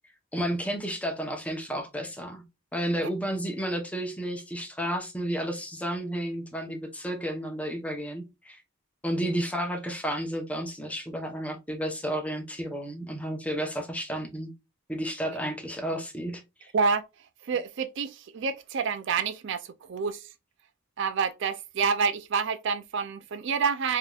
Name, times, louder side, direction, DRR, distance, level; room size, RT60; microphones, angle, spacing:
voice 1, 0.3-2.4 2.7-8.6 9.0-14.5 14.9-16.7, equal, 5° left, 0.8 m, -32 dB
voice 2, 16.7-17.1 17.4-20.2 21.0-24.0, right 5 dB, 60° right, 0.4 m, -28 dB
4.9 x 2.8 x 2.3 m
head